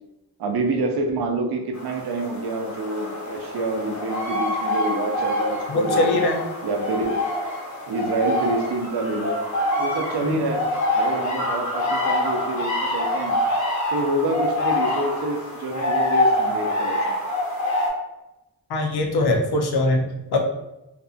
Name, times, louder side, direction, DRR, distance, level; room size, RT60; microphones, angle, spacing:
voice 1, 0.4-6.2 6.6-7.3 7.9-9.4 9.8-10.7 10.9-13.4 13.9-17.2, right 2 dB, 75° right, 3 dB, 0.5 m, -27 dB
sound 1, 1.7-17.9, left 1 dB, 45° left, 1.0 m, -25 dB
voice 2, 5.7-6.4 10.2-10.4 18.7-20.4, left 2 dB, 75° left, 3 dB, 0.6 m, -22 dB
2.6 x 2.5 x 2.3 m, 0.95 s
cardioid pair, 65°, 39 cm